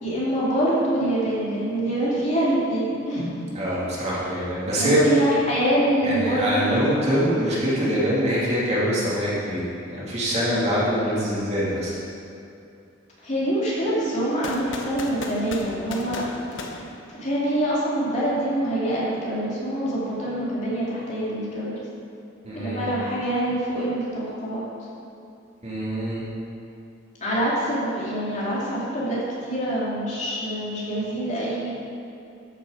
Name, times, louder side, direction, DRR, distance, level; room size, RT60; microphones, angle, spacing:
voice 1, 0.0-3.3 4.8-7.2 13.2-16.4 17.1-21.7 22.5-24.6 27.2-31.7, right 1 dB, 40° left, -7 dB, 2.8 m, -25 dB
voice 2, 3.5-5.0 6.0-11.9 22.4-23.0 25.6-26.3, equal, 35° right, -7 dB, 2.5 m, -24 dB
sound 1, 14.4-17.6, left 2 dB, 70° left, 1.0 m, -36 dB
13.0 x 6.7 x 5.0 m, 2.6 s
head